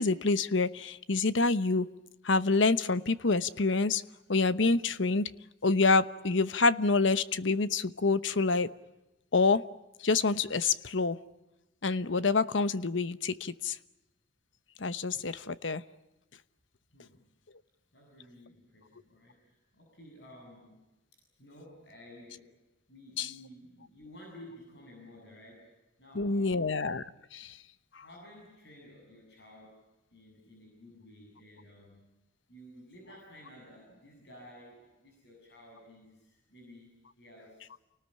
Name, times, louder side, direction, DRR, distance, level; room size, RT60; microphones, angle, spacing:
voice 1, 0.0-1.9 2.2-4.0 4.3-5.3 5.6-8.7 9.3-9.6 10.0-11.2 11.8-13.8 14.8-15.8 23.2-23.3 26.1-27.1 27.3-27.6 27.9-28.0, left 3 dB, 75° left, 14 dB, 1.0 m, -27 dB
voice 2, 17.9-20.9 21.4-22.6 22.9-26.7 28.0-32.0 32.5-36.9 37.2-37.7, left 1 dB, 60° left, -1 dB, 7.6 m, -53 dB
29.5 x 19.0 x 9.9 m, 0.95 s
head